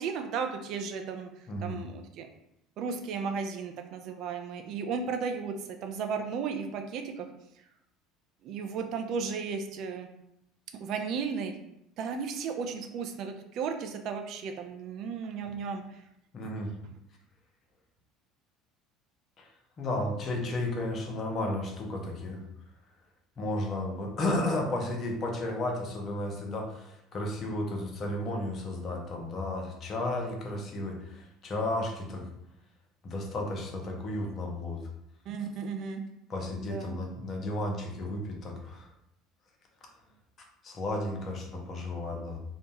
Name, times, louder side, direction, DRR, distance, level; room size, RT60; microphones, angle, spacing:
voice 1, 0.0-1.3 1.6-2.3 2.8-5.5 5.8-7.3 8.4-10.1 10.8-11.5 12.0-15.8 35.3-36.0 36.6-36.9, right 5 dB, 50° right, 5 dB, 0.3 m, -34 dB
voice 2, 1.5-1.8 16.3-16.7 19.4-19.5 19.8-22.4 23.4-32.3 33.0-34.9 36.3-38.9 40.6-42.4, left 1 dB, 35° left, 1 dB, 0.5 m, -33 dB
2.5 x 2.1 x 2.9 m, 0.81 s
figure-of-eight pair, 65°, 0 cm